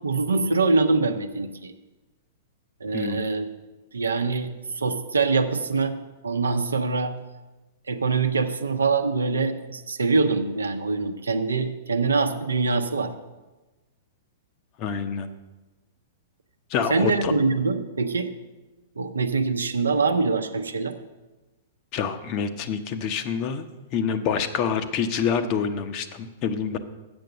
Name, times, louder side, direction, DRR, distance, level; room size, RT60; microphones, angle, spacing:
voice 1, 0.0-1.7 2.8-3.5 3.9-4.5 4.7-5.9 6.2-7.1 7.9-13.1 16.9-18.3 19.0-21.0, right 4 dB, 80° right, 7 dB, 0.7 m, -24 dB
voice 2, 2.9-3.3 14.8-15.3 16.7-17.3 21.9-23.7 23.9-26.8, left 6 dB, 40° left, 9 dB, 0.8 m, -27 dB
7.9 x 6.8 x 6.7 m, 1.2 s
figure-of-eight pair, 105°, 0 cm